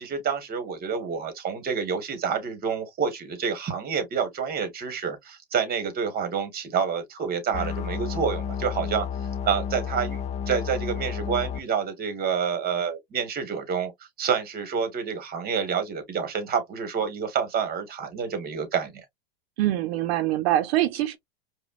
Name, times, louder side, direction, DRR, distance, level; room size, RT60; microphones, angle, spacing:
voice 1, 0.0-9.1 9.4-10.2 10.5-13.9 14.2-19.0, right 6 dB, 30° right, 1.4 m, -28 dB
sound 1, 7.5-11.6, left 8 dB, 20° left, 0.5 m, -31 dB
voice 2, 19.6-21.2, right 14 dB, 70° right, 0.7 m, -24 dB
4.9 x 2.2 x 2.3 m
supercardioid pair, 120°, 32 cm